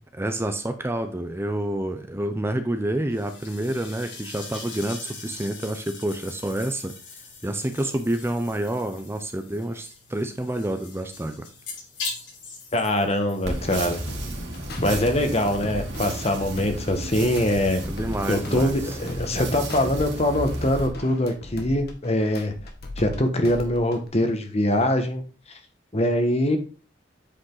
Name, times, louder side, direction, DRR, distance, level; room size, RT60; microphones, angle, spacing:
voice 1, 0.1-6.9 7.4-11.5 17.8-19.0, right 1 dB, 15° right, 8 dB, 0.6 m, -28 dB
sound 1, 3.1-17.3, left 4 dB, 85° left, 4.6 m, -42 dB
voice 2, 12.7-14.0 14.8-17.8 18.3-22.5 23.0-25.2 25.9-26.6, left 1 dB, 35° left, 6 dB, 1.4 m, -23 dB
sound 2, 13.4-20.9, right 1 dB, 70° right, 2.4 m, -33 dB
sound 3, 14.1-15.0 15.3-18.2 18.4-20.0 20.3-23.2 23.4-24.1, left 1 dB, 60° left, 1.7 m, -37 dB
8.7 x 5.2 x 3.9 m, 0.36 s
head